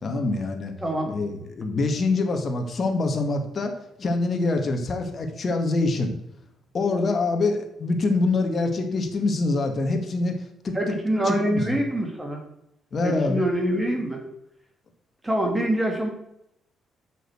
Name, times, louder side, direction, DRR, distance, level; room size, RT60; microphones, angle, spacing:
voice 1, 0.0-0.7 1.1-6.2 6.7-10.8 11.3-11.8 12.9-13.4, left 3 dB, 45° left, 5 dB, 1.7 m, -25 dB
voice 2, 0.8-1.1 10.7-12.4 13.0-14.2 15.2-16.1, right 1 dB, 15° right, 2 dB, 2.2 m, -25 dB
6.6 x 6.5 x 6.3 m, 0.80 s
cardioid pair, 90°, 0 cm